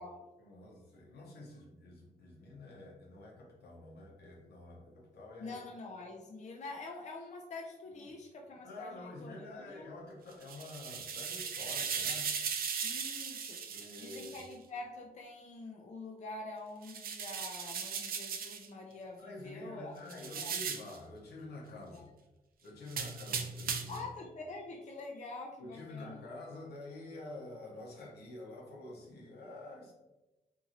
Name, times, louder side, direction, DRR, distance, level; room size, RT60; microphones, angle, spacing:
voice 1, 0.4-5.6 7.9-8.0 8.6-12.3 13.7-14.4 19.2-22.1 22.6-24.1 25.6-29.9, left 2 dB, 80° left, -3 dB, 0.9 m, -48 dB
voice 2, 5.4-9.9 12.8-20.6 21.9-22.1 23.9-26.2, left 2 dB, 45° left, 0 dB, 0.5 m, -46 dB
sound 1, 10.3-14.5 16.8-18.7 20.1-21.0 22.9-24.1, right 6 dB, 65° right, 0.4 m, -38 dB
2.8 x 2.7 x 2.5 m, 1.0 s
cardioid pair, 60°, 16 cm